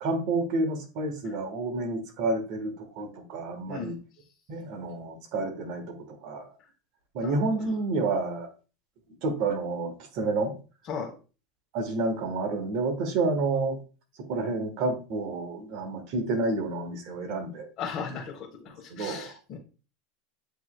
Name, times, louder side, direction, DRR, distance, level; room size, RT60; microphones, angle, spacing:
voice 1, 0.0-4.0 4.5-6.5 7.1-8.5 9.2-10.5 11.7-13.8 14.2-17.7 18.9-19.3, right 3 dB, 60° right, 6 dB, 1.2 m, -29 dB
voice 2, 3.7-4.0 7.2-7.3 10.9-11.1 17.8-19.6, left 6 dB, 45° left, -2 dB, 1.1 m, -36 dB
7.9 x 3.0 x 2.2 m, 0.34 s
supercardioid pair, 110°, 0 cm